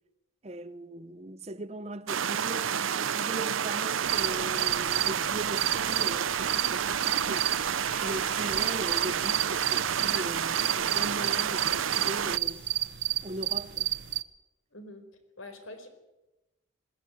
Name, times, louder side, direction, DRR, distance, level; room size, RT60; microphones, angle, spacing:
voice 1, 0.4-7.5 8.0-12.6 13.2-13.9, right 1 dB, 30° right, 0.8 m, -39 dB
sound 1, 2.1-12.4, right 8 dB, 85° right, 0.7 m, -29 dB
sound 2, 4.1-14.2, right 14 dB, 55° right, 1.0 m, -31 dB
Water / Bathtub (filling or washing), 6.9-12.9, left 1 dB, 5° left, 2.1 m, -51 dB
voice 2, 14.7-15.1 15.4-15.9, left 2 dB, 85° left, 4.7 m, -45 dB
21.5 x 17.5 x 9.5 m
head